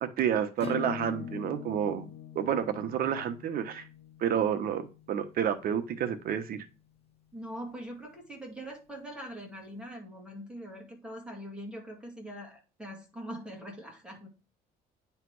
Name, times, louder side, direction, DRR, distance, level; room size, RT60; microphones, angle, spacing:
voice 1, 0.0-2.1 2.3-3.8 4.2-6.6, right 9 dB, 60° right, 8 dB, 1.1 m, -30 dB
Acoustic guitar / Strum, 0.6-5.8, left 8 dB, 35° left, 1.3 m, -43 dB
voice 2, 7.3-14.3, equal, 5° right, 0 dB, 2.2 m, -42 dB
9.3 x 3.3 x 4.7 m, 0.32 s
cardioid pair, 110°, 17 cm